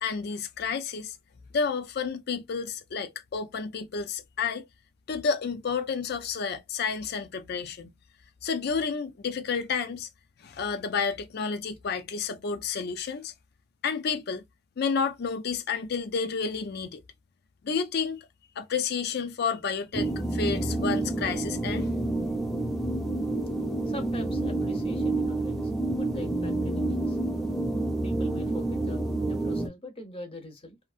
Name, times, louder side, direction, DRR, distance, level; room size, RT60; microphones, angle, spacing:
voice 1, 0.0-1.2 1.5-4.6 5.1-7.9 8.4-10.1 10.4-13.3 13.8-14.4 14.8-17.0 17.6-18.3 18.6-21.9, left 5 dB, 55° left, 0.4 m, -30 dB
sound 1, 19.9-29.7, right 2 dB, ahead, 0.8 m, -28 dB
voice 2, 23.9-27.2 28.0-30.8, left 1 dB, 30° left, 0.8 m, -43 dB
2.7 x 2.6 x 2.4 m
head